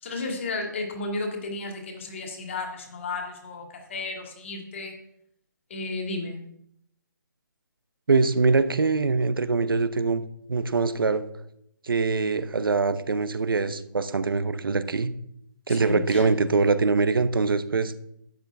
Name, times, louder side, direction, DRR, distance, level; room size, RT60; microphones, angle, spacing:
voice 1, 0.0-5.0 5.7-6.4 15.7-16.3, left 3 dB, 35° left, 3 dB, 2.2 m, -33 dB
voice 2, 8.1-10.2 10.5-11.2 11.8-15.1 15.7-17.9, right 4 dB, 90° right, 13 dB, 0.9 m, -23 dB
11.5 x 9.4 x 3.5 m, 0.74 s
hypercardioid pair, 175°, 11 cm